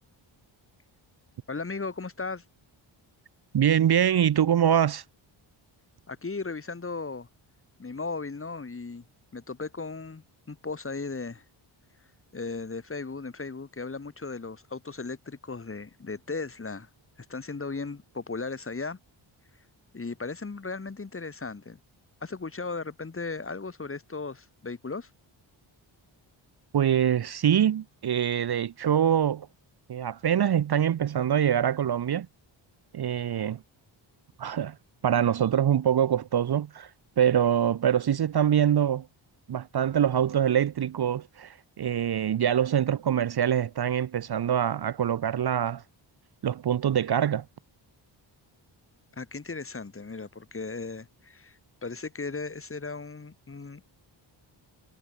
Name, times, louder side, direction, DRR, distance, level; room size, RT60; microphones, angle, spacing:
voice 1, 1.5-2.4 6.1-7.3 7.8-9.0 9.3-11.4 12.3-16.9 17.3-19.0 19.9-21.8 22.2-25.1 49.2-53.9, left 4 dB, 25° left, 1.6 m, -36 dB
voice 2, 3.5-5.0 26.7-29.5 29.9-32.3 32.9-33.6 34.4-34.7 35.0-36.9 37.2-39.1 39.5-45.8 46.4-47.4, right 9 dB, 50° right, 0.8 m, -24 dB
cardioid pair, 75°, 50 cm